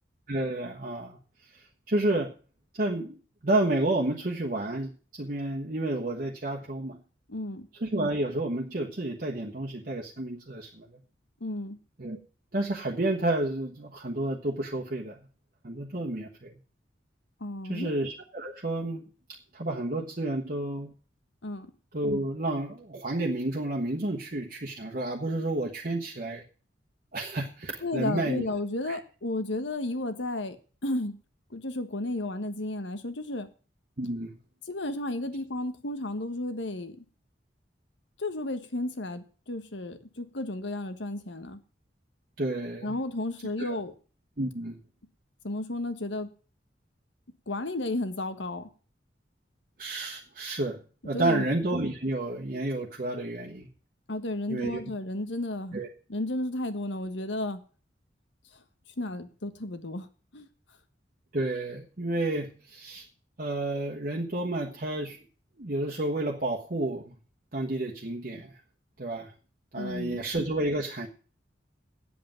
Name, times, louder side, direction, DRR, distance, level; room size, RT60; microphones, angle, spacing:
voice 1, 0.3-1.2 1.5-2.3 2.7-3.1 3.4-7.0 7.8-10.9 12.0-12.2 12.5-15.2 15.6-16.5 17.7-19.1 19.5-20.9 21.9-26.4 27.1-28.4 28.8-29.0 34.0-34.4 42.4-42.9 43.6-43.7 44.4-44.8 49.8-50.8 51.0-53.7 54.5-54.8 55.7-55.9 61.3-63.1 63.4-65.2 65.6-67.1 67.5-68.6 69.0-69.3 69.7-71.1, right 2 dB, 50° right, -1 dB, 1.2 m, -30 dB
voice 2, 7.3-7.7 11.4-11.8 17.4-17.9 21.4-21.7 27.8-30.6 30.8-31.2 31.5-33.5 34.6-37.0 38.2-41.6 42.8-43.9 45.4-46.3 47.5-48.7 51.1-51.4 54.1-55.8 56.1-57.6 59.0-60.1 60.3-60.5 69.8-70.2, left 2 dB, 85° left, 10 dB, 1.4 m, -33 dB
8.6 x 7.8 x 9.1 m, 0.38 s
head